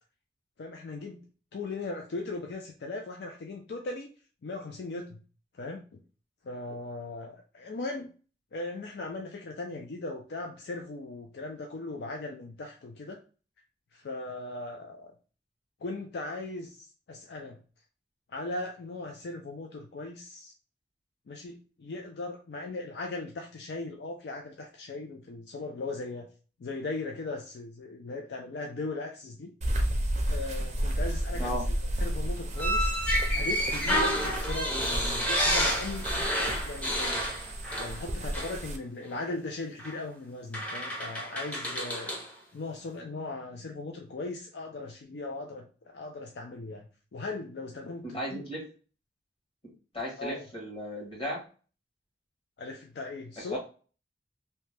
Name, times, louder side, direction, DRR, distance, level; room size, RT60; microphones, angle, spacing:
voice 1, 0.6-1.2 1.5-4.1 4.4-5.2 5.5-6.0 6.4-8.1 8.5-13.2 13.9-15.1 15.8-17.6 18.3-20.5 21.3-26.3 26.6-29.5 30.2-31.6 32.0-32.9 33.3-37.2 37.8-42.2 42.5-48.4 50.2-50.5 52.6-53.6, left 2 dB, 65° left, 2 dB, 0.4 m, -38 dB
sound 1, 29.6-38.8, equal, 40° right, 0.4 m, -32 dB
sound 2, 32.6-38.1 38.3-38.6 39.8-39.9 40.5-42.3, equal, 10° left, 0.6 m, -30 dB
voice 2, 48.0-48.6 49.9-51.4 53.4-53.6, equal, 30° left, -4 dB, 1.3 m, -35 dB
2.8 x 2.1 x 3.2 m, 0.37 s
head